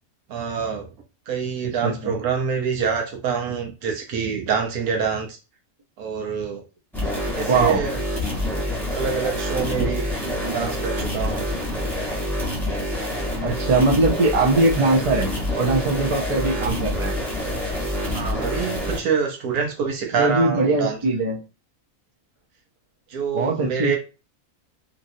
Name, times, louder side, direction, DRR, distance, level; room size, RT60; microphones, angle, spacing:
voice 1, 0.3-0.9 1.3-5.4 6.0-6.6 7.3-8.0 8.9-10.1 10.5-11.5 18.0-21.0 23.1-24.0, right 6 dB, 85° right, 3 dB, 1.3 m, -26 dB
voice 2, 1.8-2.1 7.5-7.8 10.4-10.7 13.4-17.2 20.2-21.4 23.3-24.0, right 3 dB, 50° right, -1 dB, 0.3 m, -21 dB
sound 1, 6.9-19.0, left 1 dB, ahead, 0.8 m, -27 dB
3.0 x 2.7 x 2.6 m, 0.31 s
omnidirectional pair, 1.5 m